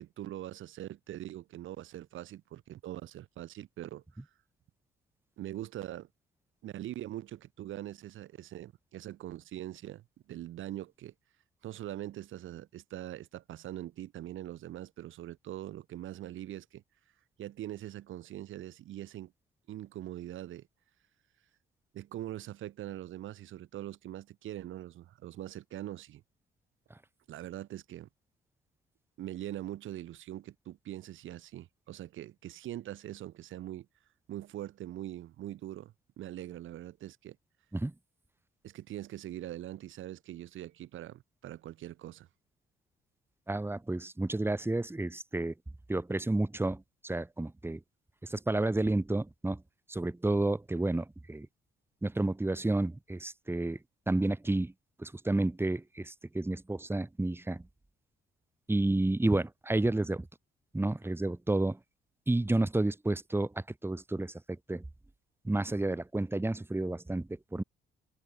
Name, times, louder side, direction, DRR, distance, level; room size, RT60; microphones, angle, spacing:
voice 1, 0.0-4.0 5.4-6.1 6.6-11.1 11.6-16.8 17.4-19.3 19.7-20.7 21.9-26.2 27.3-28.1 29.2-33.9 34.3-37.4 38.6-42.3, right 13 dB, 80° right, 3.1 m, -42 dB
voice 2, 43.5-45.5 45.9-47.8 48.2-49.6 49.9-51.5 52.0-53.8 54.1-54.7 55.0-57.6 58.7-60.3 60.7-61.8 62.3-63.5 63.8-64.3 64.7-64.8 65.4-67.6, right 2 dB, 10° right, 2.2 m, -30 dB
open air
cardioid pair, 90°, 20 cm